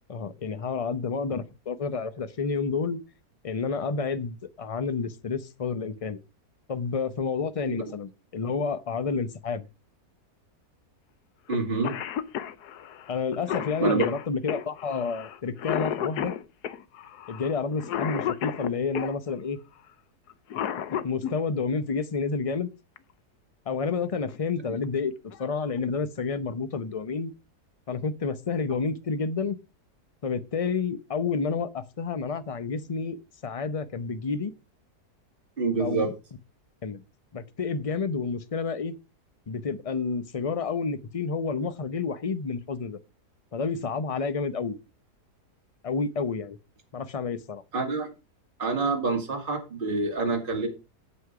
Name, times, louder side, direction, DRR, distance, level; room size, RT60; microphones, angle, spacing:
voice 1, 0.1-3.0 3.4-6.2 6.7-9.6 13.1-16.3 17.3-19.6 20.7-22.7 23.7-25.1 25.4-27.3 27.9-29.6 30.2-34.5 35.8-36.1 36.8-37.0 37.3-38.9 39.5-43.0 43.5-44.8 45.8-46.6 46.9-47.6, left 5 dB, 50° left, 0.4 m, -30 dB
Cough, 11.5-11.6 11.8-19.1 20.3-21.3 23.0-23.1 24.1-24.4 24.8-24.9 25.3-25.8, left 10 dB, 80° left, 1.3 m, -32 dB
voice 2, 11.5-11.9 13.8-14.0 35.6-36.1 47.7-48.1 48.6-50.7, right 4 dB, 35° right, 2.4 m, -27 dB
8.4 x 8.1 x 4.8 m
omnidirectional pair, 1.7 m